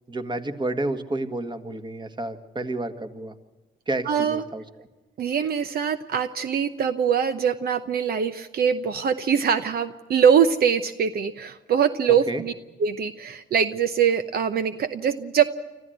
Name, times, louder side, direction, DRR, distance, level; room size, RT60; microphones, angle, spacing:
voice 1, 0.1-3.3 3.9-4.6 12.3-12.4, right 2 dB, 25° right, 8 dB, 1.8 m, -30 dB
voice 2, 4.0-4.4 5.2-12.5 12.8-15.4, right 7 dB, 70° right, 10 dB, 0.8 m, -23 dB
26.0 x 14.5 x 8.0 m, 1.2 s
cardioid pair, 75°, 17 cm